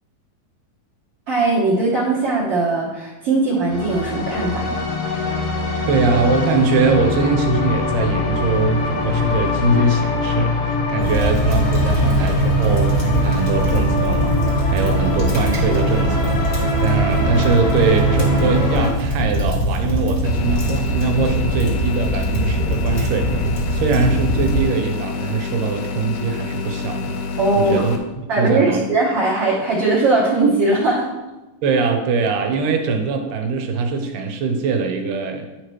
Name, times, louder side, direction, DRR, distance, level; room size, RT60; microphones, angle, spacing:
voice 1, 1.3-4.8 27.4-27.8 28.3-31.1, right 2 dB, 60° right, -6 dB, 1.7 m, -19 dB
sound 1, 3.7-18.9, left 1 dB, 65° left, 1.4 m, -22 dB
voice 2, 5.9-14.4 14.7-23.5 23.7-27.2 27.6-28.9 31.6-35.5, right 4 dB, 80° right, 5 dB, 2.4 m, -22 dB
sound 2, 11.0-24.6, equal, 40° left, 0.9 m, -22 dB
sound 3, 20.2-28.0, left 5 dB, 80° left, 1.4 m, -28 dB
11.0 x 4.9 x 3.1 m, 1.1 s
omnidirectional pair, 3.9 m